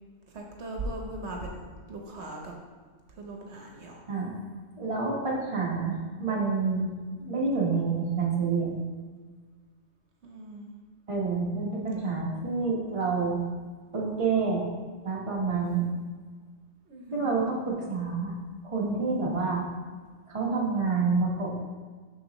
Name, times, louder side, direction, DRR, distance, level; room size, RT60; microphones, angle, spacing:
voice 1, 0.3-2.5 3.1-4.0 10.2-10.8 11.9-12.1 16.9-17.4, right 1 dB, 70° right, 0 dB, 1.1 m, -39 dB
voice 2, 4.8-6.9 7.2-8.8 11.1-13.4 13.9-14.7 15.0-15.9 17.1-18.3 18.6-19.6 20.3-21.5, right 4 dB, 30° right, -3 dB, 1.2 m, -28 dB
6.9 x 6.0 x 3.0 m, 1.5 s
omnidirectional pair, 1.2 m